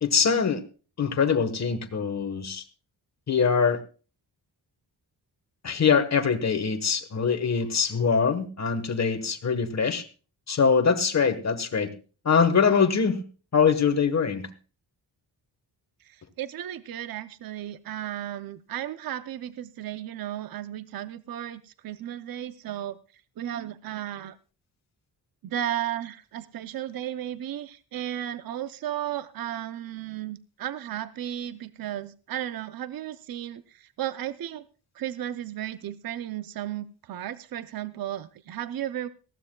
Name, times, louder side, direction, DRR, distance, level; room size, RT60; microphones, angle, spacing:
voice 1, 0.0-0.6 1.0-2.6 3.3-3.8 5.6-10.0 10.5-11.9 12.2-13.2 13.5-14.5, left 6 dB, 40° left, 9 dB, 1.2 m, -23 dB
voice 2, 16.1-23.0 23.4-24.4 25.4-34.6 35.0-39.1, right 11 dB, 55° right, 13 dB, 0.6 m, -34 dB
19.0 x 15.5 x 2.2 m, 0.35 s
wide cardioid pair, 175°, 43 cm